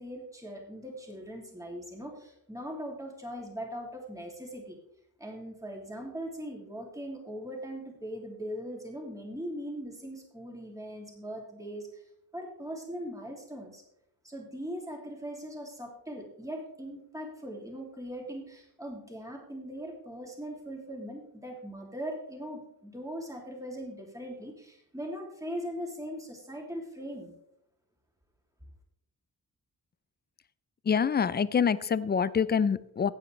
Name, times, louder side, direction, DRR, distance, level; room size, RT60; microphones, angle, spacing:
voice 1, 0.0-4.8 5.2-12.0 12.3-13.8 14.2-27.3, equal, 10° right, 0 dB, 2.7 m, -40 dB
voice 2, 30.8-33.1, left 6 dB, 30° left, 17 dB, 0.4 m, -26 dB
15.0 x 9.4 x 3.3 m, 0.74 s
wide cardioid pair, 130°, 36 cm